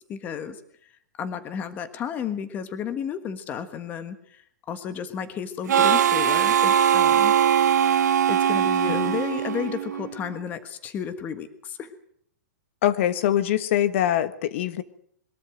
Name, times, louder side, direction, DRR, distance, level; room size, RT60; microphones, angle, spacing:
voice 1, 0.1-0.6 1.2-7.3 8.3-11.9, left 7 dB, 20° left, 11 dB, 1.5 m, -32 dB
Harmonica, 5.7-10.2, right 9 dB, 75° right, 1.2 m, -21 dB
voice 2, 8.9-9.2 12.8-14.8, left 11 dB, 45° left, 14 dB, 1.4 m, -23 dB
22.5 x 13.0 x 9.1 m, 0.66 s
hypercardioid pair, 165°, 9 cm